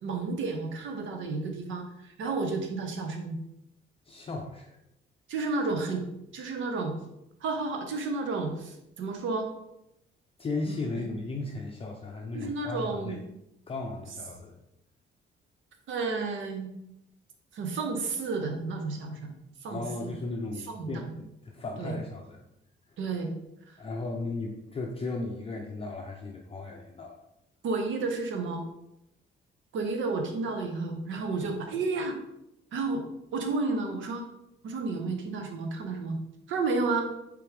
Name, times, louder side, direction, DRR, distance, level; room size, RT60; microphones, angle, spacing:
voice 1, 0.0-3.4 5.3-6.9 7.4-9.5 10.7-11.0 12.3-13.2 15.9-16.7 17.5-19.4 19.6-20.2 20.7-21.1 21.8-21.9 23.0-23.3 23.7-23.8 27.6-28.6 29.7-32.2 32.7-33.0 33.3-34.3 34.6-36.2 36.5-37.1, right 3 dB, 75° right, 4 dB, 0.9 m, -31 dB
voice 2, 4.1-4.8 10.4-13.2 13.7-14.5 19.7-22.4 23.8-27.2, left 3 dB, 30° left, 1 dB, 0.5 m, -36 dB
4.6 x 3.4 x 3.4 m, 0.85 s
cardioid pair, 90°, 20 cm